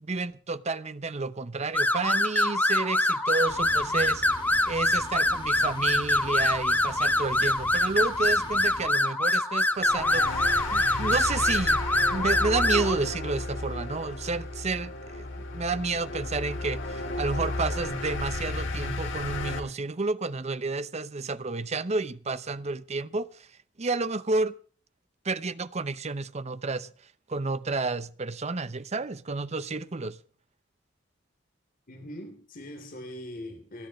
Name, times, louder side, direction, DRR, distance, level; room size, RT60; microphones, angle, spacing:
voice 1, 0.0-4.2 4.7-11.8 12.1-15.3 15.5-23.5 23.8-24.5 25.2-26.9 27.3-30.2, right 3 dB, 35° right, 0.8 m, -31 dB
sound 1, 1.7-13.0, left 1 dB, 10° left, 1.3 m, -25 dB
sound 2, 3.5-8.9, left 1 dB, 30° left, 2.4 m, -43 dB
sound 3, 9.7-19.6, left 2 dB, 75° left, 3.0 m, -33 dB
voice 2, 31.9-33.9, left 1 dB, 50° left, 3.3 m, -41 dB
27.5 x 10.5 x 3.1 m
head